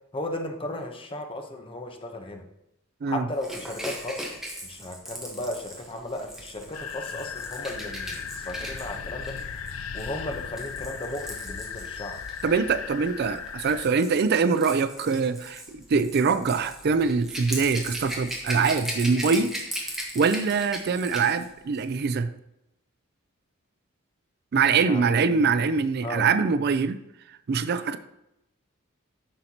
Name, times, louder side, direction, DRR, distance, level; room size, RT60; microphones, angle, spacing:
voice 1, 0.1-2.4 3.1-9.4 9.9-12.2 24.8-25.7 26.0-26.3, left 1 dB, 25° left, 4 dB, 0.9 m, -35 dB
Rattle / Rattle (instrument), 3.4-12.4 13.4-21.5 21.7-21.9, equal, ahead, 1.2 m, -38 dB
sound 1, 6.7-13.8, left 6 dB, 85° left, 0.5 m, -37 dB
voice 2, 12.4-19.5 20.1-22.3 24.5-27.0 27.5-28.0, right 5 dB, 50° right, 12 dB, 0.4 m, -23 dB
9.9 x 6.5 x 2.9 m, 0.85 s
head